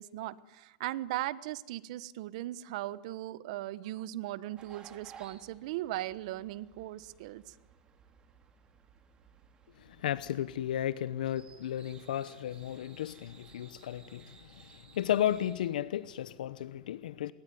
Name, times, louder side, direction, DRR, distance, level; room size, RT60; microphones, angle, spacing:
voice 1, 0.0-7.5, right 15 dB, 55° right, 1.2 m, -38 dB
sound 1, 4.6-15.7, right 6 dB, 20° right, 2.8 m, -58 dB
voice 2, 9.8-17.3, left 11 dB, 85° left, 1.0 m, -34 dB
28.0 x 21.5 x 9.4 m
supercardioid pair, 155°, 4 cm